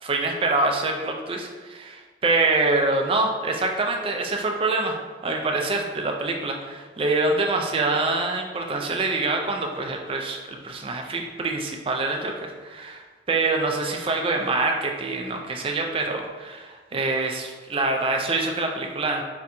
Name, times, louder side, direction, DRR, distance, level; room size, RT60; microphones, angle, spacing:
voice 1, 0.0-5.0 5.2-19.2, right 3 dB, 30° right, 2 dB, 0.3 m, -25 dB
4.1 x 2.2 x 2.5 m, 1.4 s
head